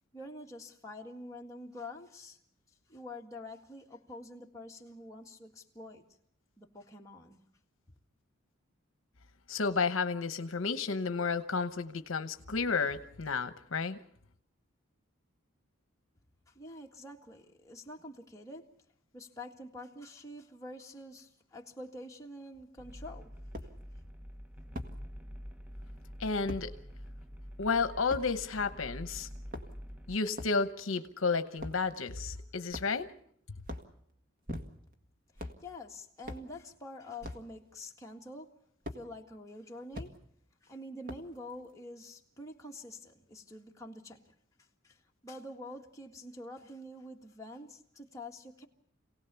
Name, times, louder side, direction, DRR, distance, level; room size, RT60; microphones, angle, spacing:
voice 1, 0.1-2.4 2.9-6.0 6.6-7.4 16.5-18.7 19.1-23.4 35.3-38.5 38.9-40.1 40.6-48.7, left 1 dB, 15° left, 1.9 m, -47 dB
voice 2, 9.5-14.0 26.2-26.7 27.6-29.3 30.1-33.1, left 4 dB, 70° left, 1.0 m, -32 dB
sound 1, 22.5-22.6 23.5-23.7 24.7-24.9 26.5-26.6 28.1-28.3 29.3-29.9 30.3-30.6 31.6-31.8 32.7-33.1 33.6-33.9 34.5-34.9 35.3-35.6 36.2-36.5 37.2-37.5 38.8-39.0 39.9-40.1 41.1-41.4, left 1 dB, 45° right, 1.8 m, -41 dB
sound 2, 22.8-30.2, equal, 5° right, 0.9 m, -46 dB
27.0 x 18.0 x 7.0 m
head